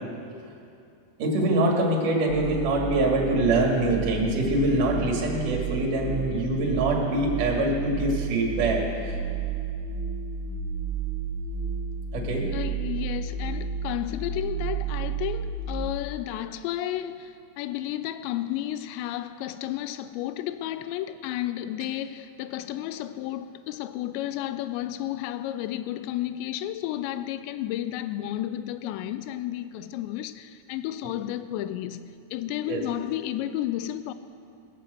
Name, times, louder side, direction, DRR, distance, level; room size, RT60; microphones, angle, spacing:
voice 1, 1.2-9.2 12.1-12.5 32.6-32.8, right 2 dB, 50° right, 3.1 m, -24 dB
sound 1, 2.3-15.9, right 5 dB, 85° right, 3.5 m, -32 dB
voice 2, 12.5-32.0 32.3-34.1, left 12 dB, 85° left, 2.6 m, -32 dB
19.5 x 7.7 x 7.7 m
omnidirectional pair, 5.4 m